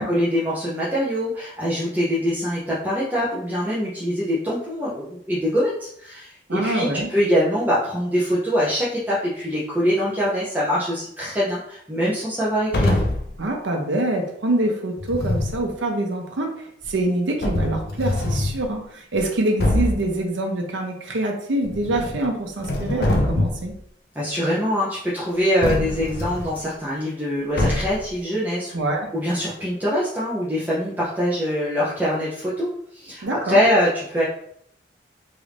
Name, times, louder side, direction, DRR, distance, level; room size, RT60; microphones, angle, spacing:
voice 1, 0.0-13.0 24.1-28.7 29.1-34.2, equal, 10° right, -8 dB, 0.5 m, -23 dB
voice 2, 6.5-7.1 13.4-23.7 28.7-29.1 33.2-33.6, right 1 dB, 80° right, 2 dB, 0.7 m, -25 dB
sound 1, 12.7-13.3 15.0-15.6 16.8-16.9 17.4-18.6 19.1-19.2 19.6-20.1 21.6-22.3 22.6-23.7 25.6-26.6 27.6-28.1, left 1 dB, 50° left, 0.5 m, -23 dB
3.1 x 2.5 x 3.2 m, 0.69 s
head